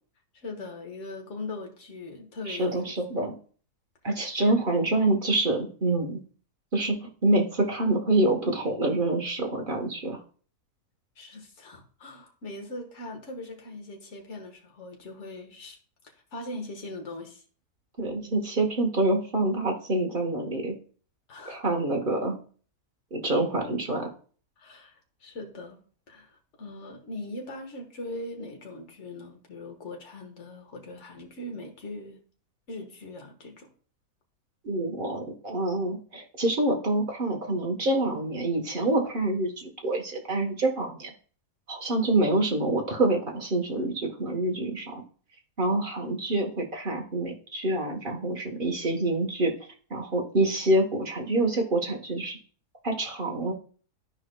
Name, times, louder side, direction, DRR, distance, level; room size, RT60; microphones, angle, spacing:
voice 1, 0.3-2.9 3.2-3.3 4.6-4.7 11.2-15.8 16.3-17.4 21.3-21.6 24.6-25.8 26.1-32.2 32.7-33.7, left 2 dB, 50° left, 2 dB, 1.6 m, -40 dB
voice 2, 2.5-3.3 4.0-6.2 6.7-10.2 18.0-20.7 21.5-22.4 23.1-24.1 34.6-41.1 41.7-45.0 45.6-49.5 49.9-52.4 52.8-53.5, right 2 dB, 35° right, 2 dB, 1.1 m, -26 dB
13.0 x 4.9 x 2.2 m, 0.42 s
omnidirectional pair, 1.7 m